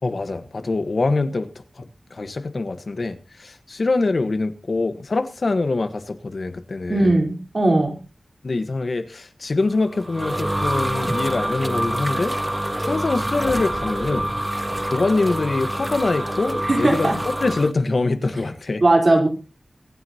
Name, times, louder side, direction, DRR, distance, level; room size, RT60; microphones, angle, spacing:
voice 1, 0.0-7.2 8.4-12.4 12.8-14.3 14.8-18.8, left 3 dB, 60° left, 10 dB, 1.4 m, -24 dB
voice 2, 6.9-7.9 16.6-17.2 18.8-19.3, right 2 dB, 45° right, 2 dB, 4.1 m, -18 dB
sound 1, 9.7-17.7, right 1 dB, 15° right, 0.7 m, -26 dB
24.0 x 9.7 x 2.9 m, 0.32 s
wide cardioid pair, 95°, 0 cm